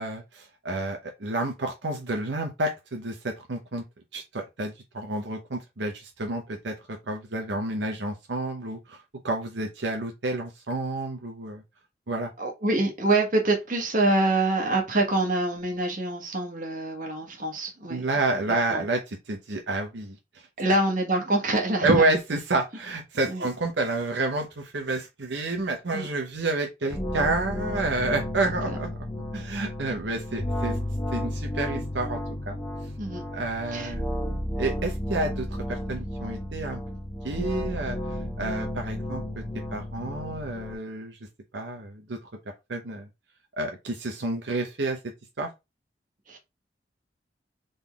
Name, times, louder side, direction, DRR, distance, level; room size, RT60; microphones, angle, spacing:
voice 1, 0.0-3.8 4.1-11.6 12.1-12.3 17.9-20.2 21.8-28.9 29.3-30.8 31.1-32.2 32.5-32.6 33.3-34.0 34.6-36.8 37.2-38.0 38.4-39.4 39.7-41.2 41.5-42.2 42.7-43.1 43.6-45.0 45.4-45.5, right 2 dB, 85° right, 0.9 m, -29 dB
voice 2, 12.4-18.0 18.7-18.8 20.6-22.1 23.3-23.4 25.9-26.1 28.7-28.8 33.0-33.2 33.7-33.9 46.3-46.4, right 2 dB, 50° right, 1.5 m, -25 dB
sound 1, 26.9-40.7, equal, 15° left, 1.6 m, -32 dB
4.0 x 3.8 x 3.5 m
head